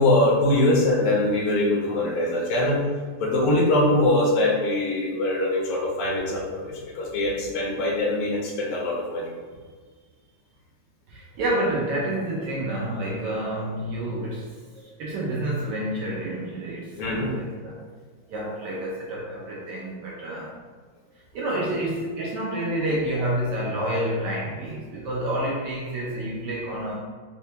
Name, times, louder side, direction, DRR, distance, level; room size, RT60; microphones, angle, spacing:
voice 1, 0.0-2.8 3.2-9.3 17.0-17.3 22.2-22.6, left 1 dB, 85° left, -2 dB, 1.7 m, -23 dB
voice 2, 11.1-17.8 18.3-20.5 21.3-27.0, right 1 dB, 75° right, -3 dB, 1.0 m, -29 dB
4.3 x 2.2 x 2.8 m, 1.5 s
omnidirectional pair, 2.2 m